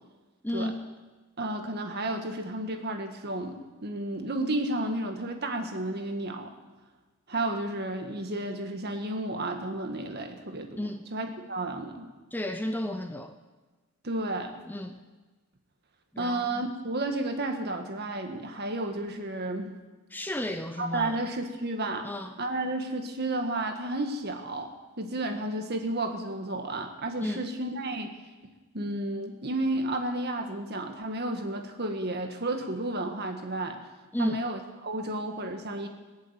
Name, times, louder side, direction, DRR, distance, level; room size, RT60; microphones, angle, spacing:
voice 1, 0.4-0.9 10.8-11.1 12.3-13.3 14.7-15.0 16.1-16.7 20.1-21.2 22.0-22.4 27.2-27.5 34.1-34.5, left 1 dB, 10° left, 7 dB, 0.6 m, -33 dB
voice 2, 1.4-6.5 7.3-10.8 11.1-12.1 14.0-14.5 16.2-19.8 20.8-22.1 22.4-24.7 25.0-28.1 28.7-33.8 34.2-35.9, right 2 dB, 50° right, 5 dB, 1.7 m, -32 dB
20.5 x 7.3 x 9.0 m, 1.3 s
head